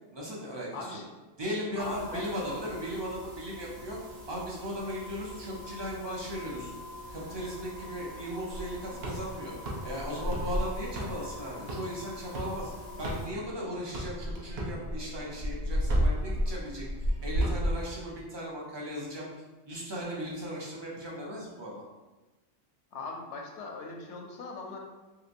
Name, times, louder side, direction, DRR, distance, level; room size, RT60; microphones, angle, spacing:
voice 1, 0.1-1.0 1.4-4.0 4.3-6.7 7.1-9.5 9.8-12.7 13.0-16.9 17.2-19.3 19.7-21.8, equal, 35° right, -4 dB, 0.5 m, -37 dB
voice 2, 0.7-1.1 1.8-2.3 22.9-24.8, left 3 dB, 80° left, 1 dB, 0.9 m, -39 dB
sound 1, 1.8-13.3, left 1 dB, 85° right, 1.1 m, -45 dB
sound 2, 8.5-13.6 13.9-17.8, equal, 65° right, 0.8 m, -31 dB
3.2 x 2.9 x 2.5 m, 1.1 s
omnidirectional pair, 1.2 m